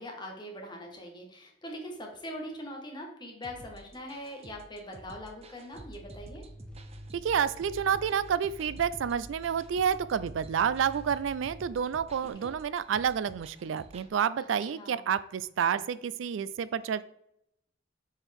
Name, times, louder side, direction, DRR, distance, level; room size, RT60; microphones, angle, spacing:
voice 1, 0.0-6.4 12.4-12.5 14.7-15.0, equal, 25° left, 1 dB, 1.5 m, -42 dB
sound 1, 3.4-14.1, right 2 dB, 35° right, 0.6 m, -52 dB
sound 2, 5.7-12.3, equal, 5° left, 1.4 m, -48 dB
voice 2, 7.1-17.0, right 7 dB, 85° right, 16 dB, 0.4 m, -29 dB
7.0 x 4.5 x 3.5 m, 0.79 s
head